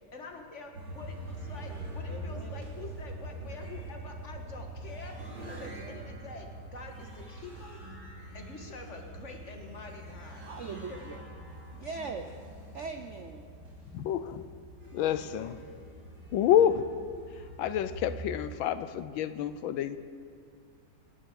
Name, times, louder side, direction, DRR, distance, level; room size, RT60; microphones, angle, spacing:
voice 1, 0.1-7.8 8.3-10.5 10.9-11.2, left 3 dB, 40° left, 3 dB, 1.7 m, -46 dB
sound 1, 0.7-18.3, right 1 dB, 80° right, 3.5 m, -44 dB
voice 2, 2.1-2.5 5.5-6.1 10.3-11.2 11.7-12.3 12.7-13.4, right 4 dB, 65° right, 6 dB, 0.7 m, -41 dB
voice 3, 13.9-14.4 14.9-15.6 16.3-16.8 17.6-20.0, left 10 dB, 75° left, 12 dB, 1.4 m, -28 dB
27.5 x 10.5 x 4.8 m, 2.1 s
omnidirectional pair, 2.2 m